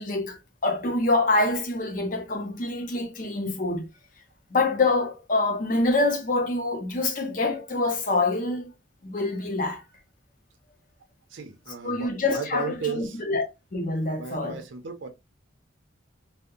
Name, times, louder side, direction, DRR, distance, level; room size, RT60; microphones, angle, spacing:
voice 1, 0.0-3.9 4.5-8.7 9.0-9.8 11.8-14.6, left 2 dB, 45° left, 0.6 m, -26 dB
voice 2, 11.3-13.2 14.2-15.1, right 5 dB, 80° right, 0.6 m, -35 dB
2.7 x 2.0 x 2.3 m
head